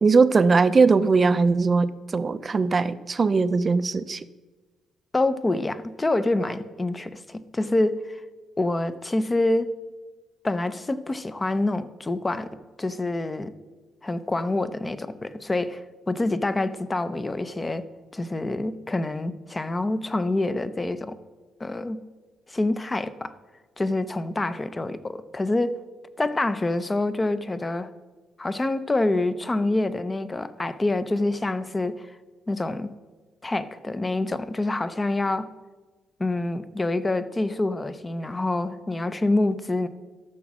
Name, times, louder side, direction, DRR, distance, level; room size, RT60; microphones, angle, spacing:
voice 1, 0.0-4.3, right 4 dB, 35° right, 14 dB, 0.5 m, -20 dB
voice 2, 5.1-8.2 8.6-9.7 10.4-13.5 14.0-17.8 18.1-21.2 21.6-22.0 22.5-23.3 23.8-25.8 26.2-27.9 28.4-32.2 32.5-32.9 33.4-35.5 36.2-39.9, left 2 dB, 20° left, 13 dB, 0.7 m, -26 dB
14.0 x 6.1 x 6.1 m, 1.3 s
cardioid pair, 90°, 0 cm